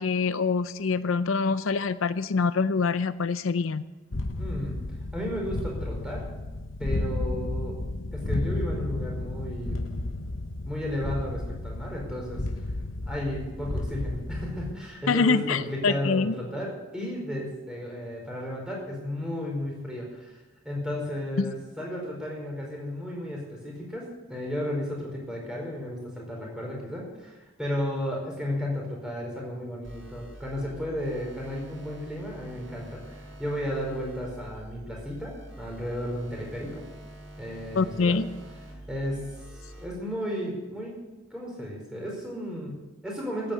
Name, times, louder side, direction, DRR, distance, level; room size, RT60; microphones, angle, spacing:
voice 1, 0.0-3.8 15.1-16.3 21.4-21.5 37.7-38.3, left 4 dB, 85° left, 14 dB, 0.6 m, -25 dB
sound 1, 4.1-14.7, left 2 dB, 70° left, 1.0 m, -33 dB
voice 2, 4.4-4.7 5.1-6.2 6.8-7.7 8.1-10.0 10.7-12.6 13.1-20.4 20.6-36.8 37.4-38.2 38.9-41.0 41.3-43.5, left 1 dB, 5° right, -2 dB, 4.8 m, -33 dB
sound 2, 29.8-39.8, right 1 dB, 75° right, 6.8 m, -45 dB
14.5 x 9.3 x 8.3 m, 1.1 s
head